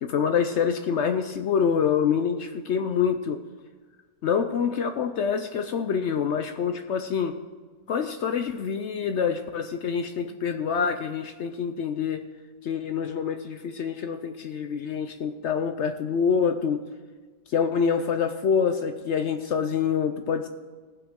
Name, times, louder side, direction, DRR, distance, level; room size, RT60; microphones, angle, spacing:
voice 1, 0.0-3.4 4.2-7.4 7.9-12.2 12.6-16.8 17.5-20.5, left 6 dB, 65° left, 7 dB, 0.7 m, -26 dB
17.0 x 6.1 x 3.6 m, 1.4 s
omnidirectional pair, 1.6 m